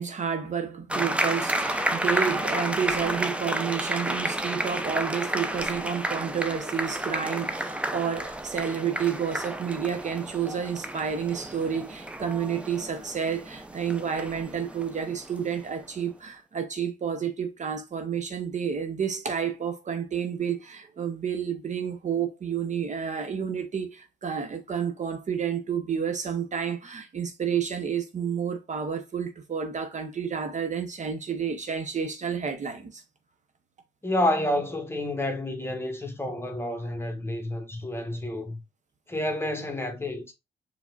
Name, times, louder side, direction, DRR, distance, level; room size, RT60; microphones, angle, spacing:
voice 1, 0.0-33.0, right 7 dB, 40° right, 0.8 m, -30 dB
sound 1, 0.9-15.8, right 1 dB, 5° right, 0.6 m, -31 dB
voice 2, 34.0-38.6 39.1-40.3, left 1 dB, 15° left, 1.1 m, -29 dB
4.8 x 3.3 x 2.4 m
supercardioid pair, 70°, 18 cm